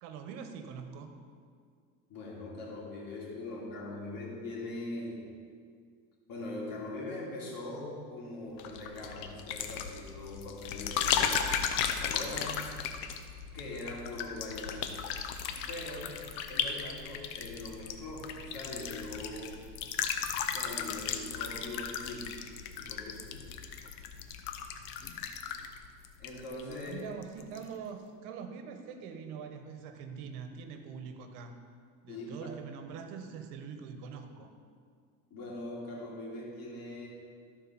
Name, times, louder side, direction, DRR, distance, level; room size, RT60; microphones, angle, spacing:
voice 1, 0.0-1.1 26.9-31.6 32.0-34.5, right 6 dB, 80° right, 7 dB, 1.1 m, -43 dB
voice 2, 2.1-5.3 6.3-11.4 11.8-12.7 13.5-15.0 15.7-19.6 20.5-22.4 22.8-23.6 26.2-27.1 32.1-32.5 35.3-37.1, left 2 dB, 60° left, -3 dB, 2.9 m, -42 dB
sound 1, 8.6-26.9 27.2-27.6, left 8 dB, 85° left, 0.8 m, -36 dB
13.5 x 4.7 x 5.8 m, 2.1 s
supercardioid pair, 105°, 38 cm